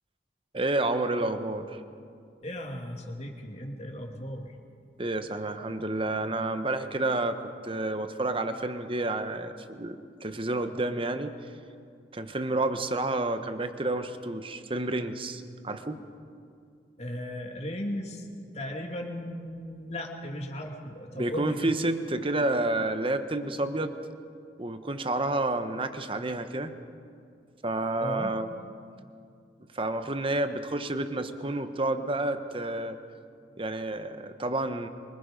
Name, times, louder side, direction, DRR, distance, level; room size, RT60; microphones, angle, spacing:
voice 1, 0.5-1.8 5.0-11.4 12.1-16.0 21.1-23.9 24.6-26.7 27.6-28.5 29.7-33.0 33.6-34.9, right 2 dB, 30° right, 9 dB, 1.1 m, -30 dB
voice 2, 2.4-4.5 17.0-18.3 18.5-21.7 28.0-28.3, equal, 40° left, 2 dB, 2.6 m, -36 dB
25.5 x 24.0 x 5.3 m, 2.3 s
head